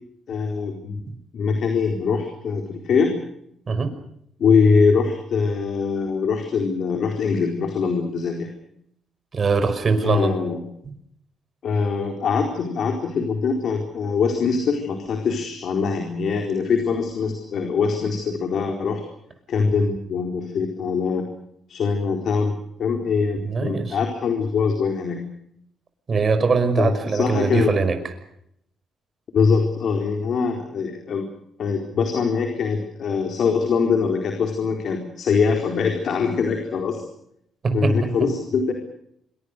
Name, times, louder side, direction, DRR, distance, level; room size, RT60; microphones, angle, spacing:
voice 1, 0.3-3.1 4.4-8.5 10.0-10.6 11.6-19.0 19.5-21.3 21.7-25.2 26.8-27.7 29.3-31.3 31.6-37.0 37.7-38.7, left 5 dB, 60° left, 3 dB, 4.2 m, -23 dB
voice 2, 9.3-10.4 23.5-24.0 26.1-28.0 37.6-38.1, right 4 dB, 40° right, 9 dB, 5.6 m, -21 dB
26.5 x 22.5 x 6.7 m, 0.74 s
cardioid pair, 90°, 0 cm